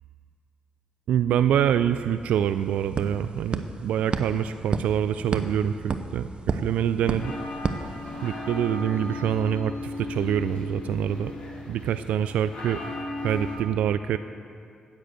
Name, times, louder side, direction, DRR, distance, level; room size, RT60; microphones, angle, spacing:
voice 1, 1.1-7.3 8.2-11.3 11.7-12.8 13.2-14.2, right 9 dB, 90° right, 11 dB, 0.3 m, -25 dB
sound 1, 1.8-1.9 2.2-8.6, right 4 dB, 50° right, 0.7 m, -32 dB
sound 2, 7.0-13.6, left 2 dB, 65° left, 3.2 m, -36 dB
9.8 x 9.1 x 7.9 m, 2.4 s
cardioid pair, 85°, 2 cm